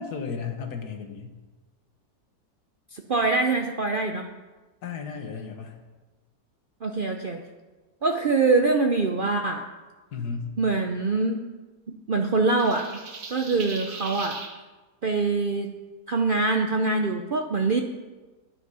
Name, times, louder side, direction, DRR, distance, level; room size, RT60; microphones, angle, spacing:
voice 1, 0.0-1.4 4.8-5.8 10.1-10.5, left 5 dB, 65° left, 5 dB, 1.8 m, -34 dB
voice 2, 2.9-4.3 6.8-7.4 8.0-9.6 10.6-11.4 11.9-12.9 13.3-14.4 15.0-15.7 16.1-17.8, right 3 dB, 85° right, 4 dB, 0.4 m, -24 dB
sound 1, 12.6-14.5, right 4 dB, 65° right, 1.8 m, -38 dB
10.0 x 9.3 x 5.5 m, 1.2 s
omnidirectional pair, 1.8 m